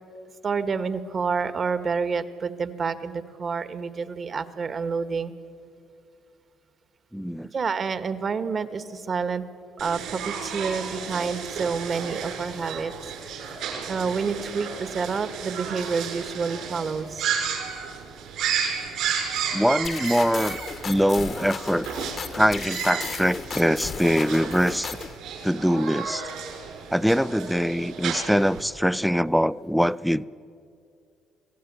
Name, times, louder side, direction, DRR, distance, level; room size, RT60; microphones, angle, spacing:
voice 1, 0.4-5.3 7.5-9.4 9.8-12.9 13.2-13.6 13.9-17.2, right 5 dB, 45° right, 1.7 m, -28 dB
voice 2, 7.1-7.5 19.5-20.6 20.8-21.9 22.3-25.0 25.4-26.3 26.9-30.2, equal, ahead, 0.6 m, -23 dB
sound 1, 9.8-28.6, right 7 dB, 75° right, 5.8 m, -33 dB
sound 2, 19.8-25.2, left 6 dB, 50° left, 1.5 m, -35 dB
26.0 x 16.5 x 9.7 m
supercardioid pair, 65°, 0 cm